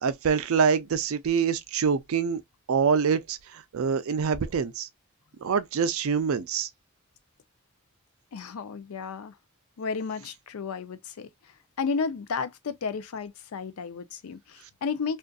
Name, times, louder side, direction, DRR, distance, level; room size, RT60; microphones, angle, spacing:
voice 1, 0.0-2.4 2.7-4.9 5.4-6.7, right 6 dB, 75° right, 0.4 m, -25 dB
voice 2, 8.3-9.3 9.8-15.2, left 5 dB, 90° left, 0.5 m, -33 dB
2.5 x 2.4 x 2.2 m
head